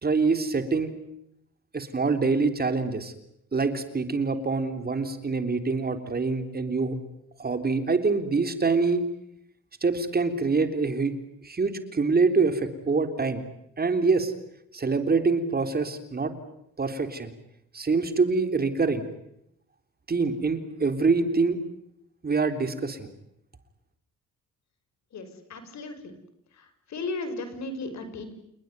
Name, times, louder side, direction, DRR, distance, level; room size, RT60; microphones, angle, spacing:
voice 1, 0.0-0.9 1.7-3.1 3.5-7.0 7.4-9.0 9.8-11.1 11.4-13.4 13.8-14.3 14.7-16.3 16.8-17.3 17.7-19.1 20.1-21.6 22.2-23.1, right 4 dB, 30° right, 9 dB, 3.6 m, -25 dB
voice 2, 25.1-26.1 26.5-28.3, left 2 dB, 65° left, 10 dB, 6.0 m, -36 dB
29.5 x 20.0 x 9.6 m, 0.78 s
cardioid pair, 90°, 30 cm